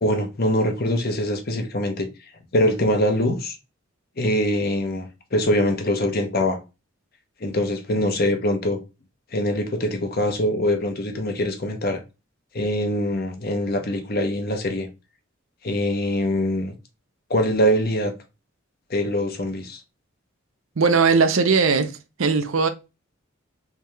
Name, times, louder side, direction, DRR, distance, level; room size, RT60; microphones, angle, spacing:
voice 1, 0.0-2.1 2.5-3.6 4.2-6.6 7.4-8.8 9.3-12.0 12.5-14.9 15.6-16.7 17.3-18.1 18.9-19.8, equal, 50° left, 0.9 m, -23 dB
voice 2, 20.8-21.9 22.2-22.7, right 4 dB, 75° right, 0.6 m, -18 dB
3.5 x 3.3 x 3.2 m
head